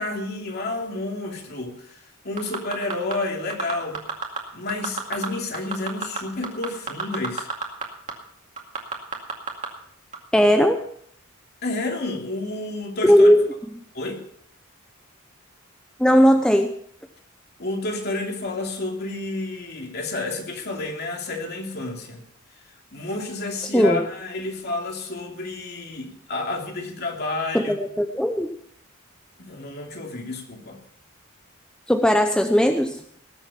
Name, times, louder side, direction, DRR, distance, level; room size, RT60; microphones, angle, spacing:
voice 1, 0.0-4.0 4.5-7.5 10.4-10.5 11.6-13.3 13.9-14.2 17.6-22.2 22.9-27.7 29.4-30.8, left 2 dB, 50° left, 1 dB, 2.8 m, -30 dB
sound 1, 2.4-3.1 3.5-4.4 4.7-5.3 5.5-7.8 8.1-8.2 8.6-9.7 10.1-10.2, right 5 dB, 35° right, 2.3 m, -28 dB
voice 2, 10.3-10.8 13.0-13.4 16.0-16.7 23.7-24.1 27.5-28.5 31.9-33.0, equal, 5° left, 6 dB, 0.6 m, -17 dB
19.0 x 8.0 x 5.9 m, 0.65 s
head